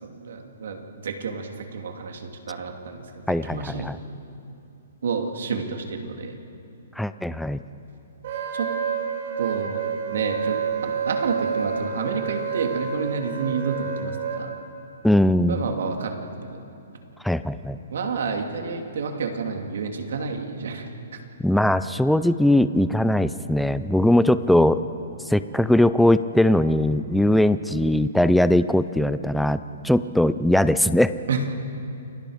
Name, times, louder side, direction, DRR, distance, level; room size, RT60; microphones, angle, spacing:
voice 1, 0.0-4.0 5.0-6.4 8.5-8.7 9.4-14.5 15.5-16.6 17.9-21.2 31.3-31.6, right 5 dB, 65° right, 3 dB, 2.7 m, -30 dB
voice 2, 3.3-4.0 7.0-7.6 15.0-15.6 17.2-17.8 21.4-24.8 25.3-31.1, left 1 dB, ahead, 13 dB, 0.4 m, -20 dB
Wind instrument woodwind instrument, 8.2-14.4, right 7 dB, 45° right, 3.4 m, -29 dB
29.0 x 23.0 x 5.1 m, 2.7 s
hypercardioid pair, 165°, 0 cm